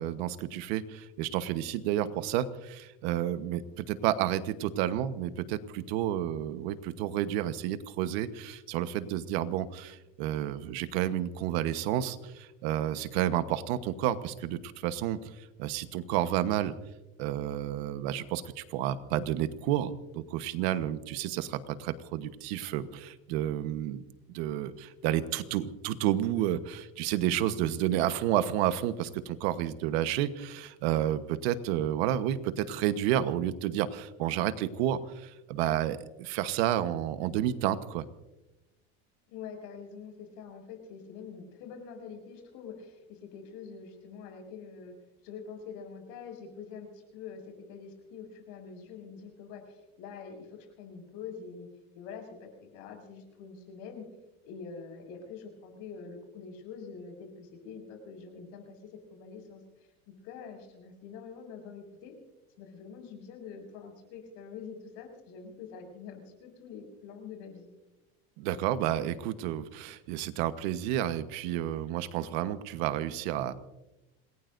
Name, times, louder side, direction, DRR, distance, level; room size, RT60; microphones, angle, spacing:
voice 1, 0.0-15.3 15.6-16.7 17.2-24.0 24.3-38.0 68.4-73.5, right 12 dB, 85° right, 12 dB, 1.2 m, -30 dB
voice 2, 39.3-44.9 45.2-51.7 52.0-54.1 54.4-62.1 62.6-67.7, left 6 dB, 70° left, 3 dB, 6.9 m, -45 dB
27.5 x 19.5 x 2.6 m, 0.98 s
cardioid pair, 160°, 30 cm